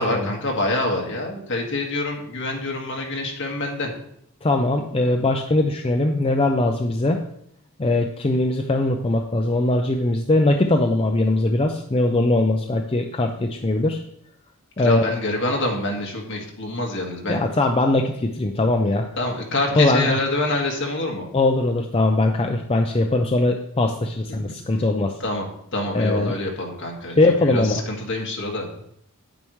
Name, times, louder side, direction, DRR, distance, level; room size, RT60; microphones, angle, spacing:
voice 1, 0.0-3.9 14.8-17.4 19.2-21.3 24.3-24.4 25.2-25.4 25.7-28.6, left 2 dB, 55° left, 0 dB, 1.8 m, -26 dB
voice 2, 4.4-7.2 7.8-14.0 14.8-15.0 17.3-19.1 19.8-20.2 21.3-25.2 25.9-26.3 27.2-27.8, left 2 dB, 25° left, 3 dB, 0.5 m, -21 dB
9.1 x 8.9 x 3.2 m, 0.72 s
head